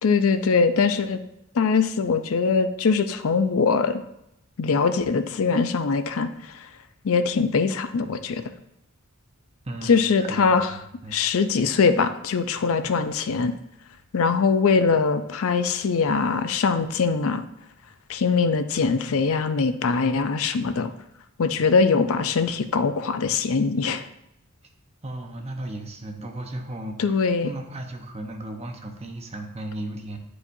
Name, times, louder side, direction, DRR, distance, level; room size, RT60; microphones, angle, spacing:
voice 1, 0.0-1.2 1.5-4.0 4.6-6.7 7.0-8.5 9.9-10.7 11.1-13.5 14.1-17.4 18.1-20.9 21.4-24.0 27.0-27.5, left 5 dB, 70° left, 10 dB, 0.5 m, -22 dB
voice 2, 9.6-11.1 12.8-12.9 21.6-21.7 25.0-30.2, right 1 dB, 30° right, 3 dB, 0.9 m, -36 dB
9.8 x 4.9 x 2.6 m, 0.82 s
head